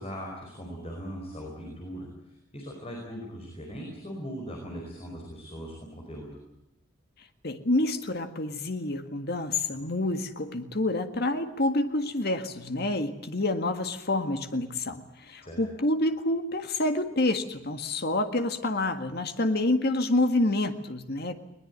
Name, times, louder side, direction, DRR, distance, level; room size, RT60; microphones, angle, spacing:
voice 1, 0.0-2.1 2.5-6.3 15.4-15.6, equal, 30° left, 0 dB, 5.1 m, -39 dB
voice 2, 7.4-21.4, left 2 dB, 50° left, 7 dB, 1.8 m, -28 dB
21.5 x 20.0 x 9.6 m, 0.84 s
head